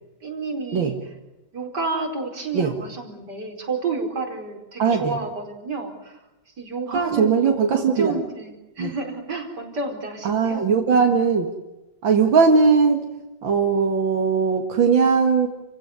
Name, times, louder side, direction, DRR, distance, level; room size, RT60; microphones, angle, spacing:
voice 1, 0.2-1.1 1.5-6.2 6.6-10.7, right 3 dB, 60° right, 3 dB, 5.3 m, -30 dB
voice 2, 7.2-8.1 8.8-8.9 10.3-11.5 12.0-13.0 13.4-15.5, right 5 dB, 85° right, 4 dB, 2.7 m, -19 dB
30.0 x 16.5 x 9.8 m, 1.0 s
omnidirectional pair, 2.0 m